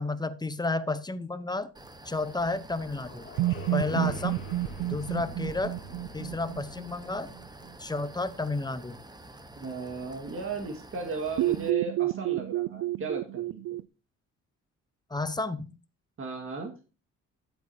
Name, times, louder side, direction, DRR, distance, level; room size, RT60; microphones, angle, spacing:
voice 1, 0.0-1.7 2.1-3.3 3.7-4.3 4.8-5.7 6.1-7.3 7.8-9.0 15.1-15.7, left 2 dB, 15° left, 13 dB, 0.8 m, -31 dB
sound 1, 1.7-11.7, right 2 dB, 15° right, 1.2 m, -49 dB
sound 2, 1.8-8.3, left 4 dB, 40° left, 2.0 m, -47 dB
sound 3, 3.4-7.3 11.4-13.8, right 17 dB, 80° right, 0.5 m, -30 dB
voice 2, 3.9-4.2 9.6-13.8 16.2-16.7, right 4 dB, 45° right, 3 dB, 2.0 m, -36 dB
12.0 x 8.0 x 2.8 m, 0.32 s
cardioid pair, 90°, 30 cm